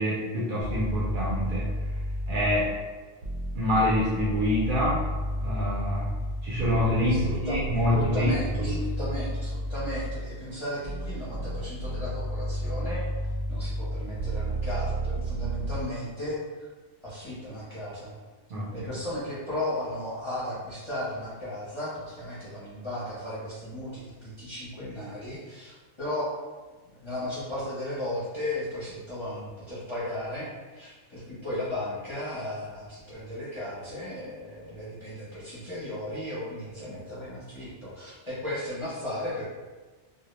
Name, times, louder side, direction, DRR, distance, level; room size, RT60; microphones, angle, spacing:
voice 1, 0.0-1.7 2.3-2.7 3.5-5.1 5.4-6.1 6.4-8.3 8.6-8.8 18.5-18.7, left 1 dB, 60° right, -7 dB, 0.6 m, -26 dB
sound 1, 0.6-2.8 3.2-10.3 10.8-15.8, right 1 dB, 90° right, 0.9 m, -31 dB
voice 2, 7.1-7.6 7.9-13.0 13.5-16.4 17.0-18.2 18.7-26.3 26.9-39.5, left 1 dB, 30° left, -10 dB, 0.6 m, -35 dB
2.2 x 2.0 x 3.0 m, 1.3 s
omnidirectional pair, 1.2 m